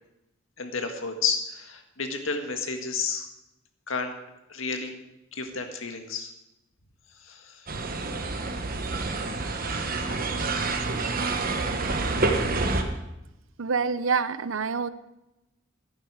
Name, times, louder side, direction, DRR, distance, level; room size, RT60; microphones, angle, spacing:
voice 1, 0.6-3.3 3.9-4.1 4.5-4.9 5.3-6.3 7.2-7.7, left 5 dB, 90° left, 6 dB, 1.8 m, -31 dB
sound 1, 7.7-12.8, right 3 dB, 45° right, 1.3 m, -28 dB
voice 2, 13.6-14.9, right 5 dB, 85° right, 15 dB, 0.7 m, -26 dB
14.0 x 11.0 x 4.9 m, 0.93 s
head